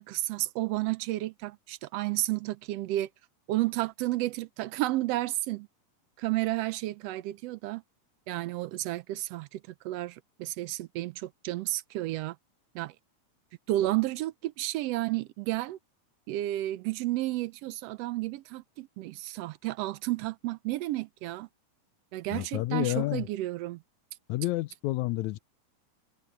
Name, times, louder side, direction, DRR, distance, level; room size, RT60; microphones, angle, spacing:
voice 1, 0.0-3.1 3.5-5.7 6.2-7.8 8.3-12.3 12.7-12.9 13.7-15.8 16.3-21.5 22.1-23.8, right 16 dB, 80° right, 1.4 m, -32 dB
voice 2, 22.3-23.3 24.3-25.4, left 18 dB, 75° left, 1.9 m, -29 dB
omnidirectional pair, 3.5 m